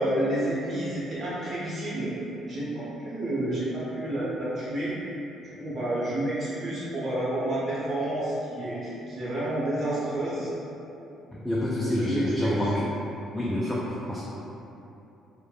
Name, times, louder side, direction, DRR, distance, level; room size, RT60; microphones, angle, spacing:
voice 1, 0.0-2.1 2.4-4.9 5.6-10.5 11.8-12.6, right 1 dB, 45° right, -9 dB, 0.9 m, -30 dB
voice 2, 11.3-12.8 13.3-14.2, left 1 dB, 10° left, -6 dB, 0.3 m, -27 dB
3.2 x 2.1 x 2.3 m, 2.9 s
cardioid pair, 100°, 0 cm